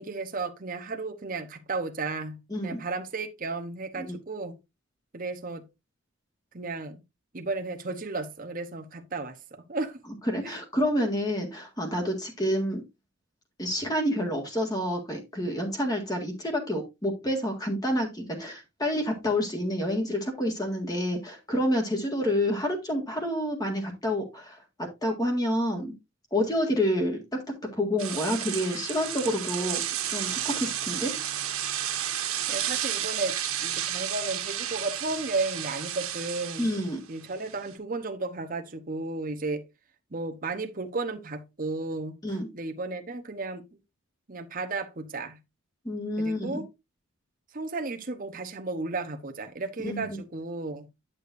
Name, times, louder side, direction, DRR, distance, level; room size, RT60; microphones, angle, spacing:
voice 1, 0.0-4.6 5.1-5.7 6.5-7.0 7.3-10.0 10.4-10.5 32.5-33.4 33.6-36.7 37.1-39.6 40.1-42.2 42.5-43.6 44.3-45.4 46.2-46.7 47.5-50.9, right 3 dB, 40° right, 0.9 m, -33 dB
voice 2, 2.5-2.8 3.9-4.2 10.3-12.8 13.6-25.9 26.3-27.2 27.7-31.1 36.6-37.0 42.2-42.5 45.9-46.6 49.8-50.2, equal, 15° left, 1.8 m, -28 dB
sound 1, 28.0-37.7, right 10 dB, 85° right, 1.5 m, -32 dB
9.8 x 6.8 x 2.6 m
head